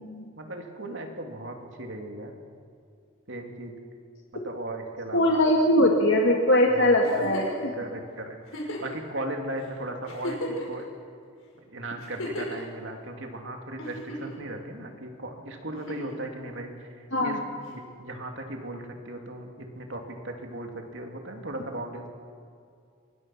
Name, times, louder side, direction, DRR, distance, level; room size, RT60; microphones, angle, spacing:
voice 1, 0.4-2.4 3.3-3.7 4.3-5.4 6.7-7.3 7.7-10.8 11.7-17.4 17.7-22.1, right 1 dB, 65° right, 3 dB, 2.8 m, -37 dB
voice 2, 5.1-7.5 17.1-17.3, left 1 dB, 65° left, 0 dB, 2.2 m, -21 dB
Giggle, 7.0-7.6 8.5-9.0 9.6-9.7 10.0-10.8 12.0-12.6 13.8-14.4 15.7-16.2 17.7-17.8, left 1 dB, 90° left, 5.9 m, -35 dB
24.0 x 20.5 x 6.0 m, 2.3 s
head